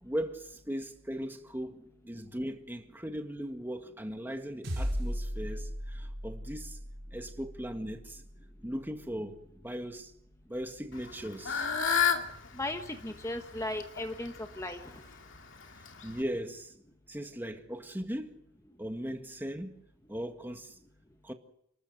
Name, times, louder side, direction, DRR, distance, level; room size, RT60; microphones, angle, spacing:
voice 1, 0.0-6.8 7.1-8.2 8.6-10.1 10.5-11.6 16.0-16.7 17.1-18.4 18.8-19.7 20.1-20.7 21.2-21.3, equal, 10° right, 1.8 m, -38 dB
sound 1, 4.6-9.2, equal, 65° right, 5.4 m, -38 dB
Fowl / Bird, 10.9-16.2, left 7 dB, 75° left, 2.5 m, -33 dB
voice 2, 12.5-15.0, left 1 dB, 15° left, 1.3 m, -37 dB
29.5 x 13.0 x 7.9 m
head